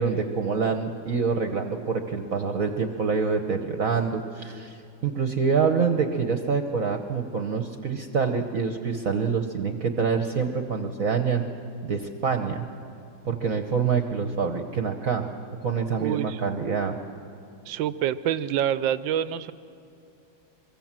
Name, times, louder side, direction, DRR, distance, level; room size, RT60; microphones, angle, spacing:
voice 1, 0.0-4.8 5.0-11.4 11.8-12.7 13.2-15.3 15.6-17.0, right 5 dB, 50° right, 6 dB, 1.3 m, -26 dB
voice 2, 16.0-16.4 17.7-19.5, right 10 dB, 75° right, 15 dB, 1.4 m, -26 dB
23.5 x 23.5 x 7.5 m, 2.8 s
omnidirectional pair, 2.2 m